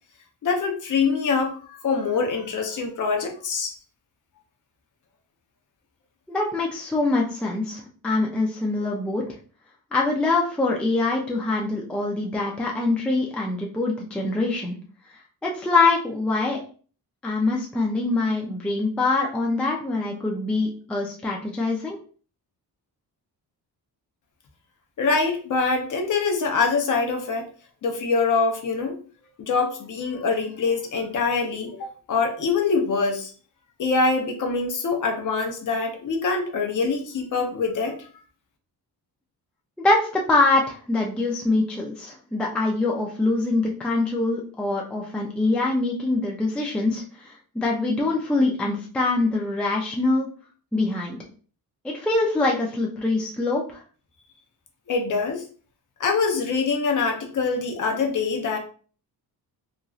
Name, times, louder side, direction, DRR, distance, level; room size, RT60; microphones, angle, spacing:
voice 1, 0.4-3.7 25.0-27.5 27.8-29.0 29.4-33.3 33.8-38.0 54.9-55.4 56.0-58.6, left 4 dB, 50° left, 3 dB, 0.7 m, -24 dB
voice 2, 6.3-9.2 9.9-14.8 15.4-16.6 17.2-22.0 39.8-50.3 50.7-51.2 51.8-53.8, left 2 dB, 5° left, -1 dB, 0.3 m, -24 dB
2.9 x 2.5 x 2.3 m, 0.40 s
wide cardioid pair, 170°, 39 cm